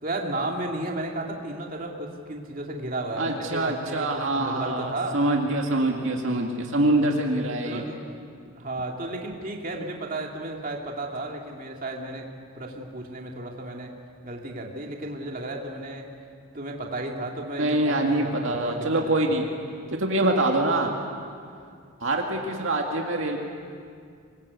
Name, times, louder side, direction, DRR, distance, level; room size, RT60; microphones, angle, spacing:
voice 1, 0.0-5.2 7.6-8.0 8.5-12.3 12.5-13.9 14.2-16.1 16.5-19.3, right 2 dB, 40° right, 0 dB, 2.6 m, -33 dB
voice 2, 3.2-7.8 17.6-19.4 19.9-20.9 22.0-23.4, right 2 dB, 65° right, 1 dB, 2.1 m, -24 dB
25.5 x 21.5 x 8.3 m, 2.3 s
head